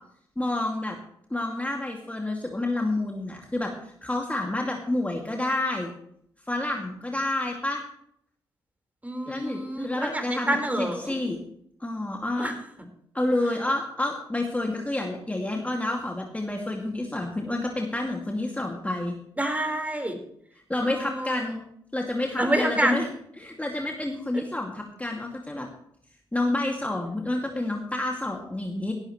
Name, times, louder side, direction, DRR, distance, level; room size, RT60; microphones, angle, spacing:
voice 1, 0.4-1.0 1.3-3.7 4.0-5.9 6.5-7.8 9.3-10.6 11.0-11.4 11.8-12.5 13.1-19.1 20.7-21.6 21.9-23.1 23.4-25.7 26.3-28.9, left 2 dB, 15° left, 1 dB, 2.4 m, -29 dB
voice 2, 9.0-11.1 12.4-12.5 19.4-20.2 20.8-21.4 22.4-23.0, right 1 dB, 15° right, 4 dB, 4.5 m, -27 dB
17.5 x 13.0 x 3.2 m, 0.70 s
hypercardioid pair, 40°, 11 cm